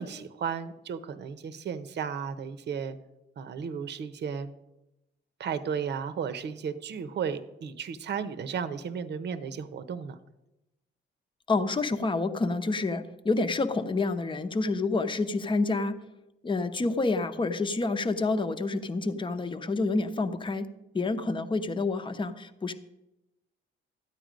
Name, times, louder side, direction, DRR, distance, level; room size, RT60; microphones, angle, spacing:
voice 1, 0.0-3.0 3.4-4.5 5.4-10.2, right 7 dB, 60° right, 12 dB, 0.9 m, -34 dB
voice 2, 11.5-16.0 16.4-20.7 20.9-22.7, left 3 dB, 25° left, 8 dB, 0.9 m, -28 dB
13.5 x 9.3 x 5.1 m, 0.95 s
cardioid pair, 90°, 20 cm